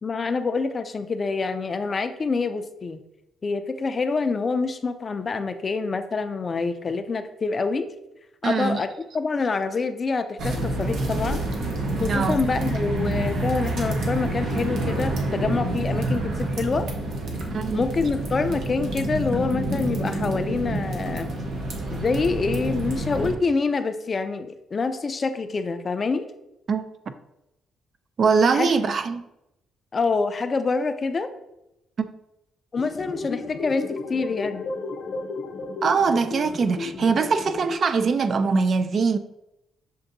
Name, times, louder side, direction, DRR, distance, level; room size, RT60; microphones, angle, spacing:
voice 1, 0.0-3.0 3.4-7.9 8.4-8.9 9.1-11.5 12.0-16.9 17.7-21.3 21.9-26.3 28.5-28.7 29.9-31.3 32.7-34.7, left 4 dB, 35° left, 0.4 m, -26 dB
voice 2, 8.4-8.8 12.1-12.4 17.5-17.8 26.7-26.8 28.2-29.2 32.0-32.1 35.8-39.2, right 5 dB, 50° right, 0.3 m, -22 dB
sound 1, 10.4-23.3, right 2 dB, 70° right, 0.8 m, -27 dB
sound 2, 32.8-37.8, left 3 dB, 75° left, 0.7 m, -33 dB
6.7 x 2.6 x 2.6 m
cardioid pair, 90°, 0 cm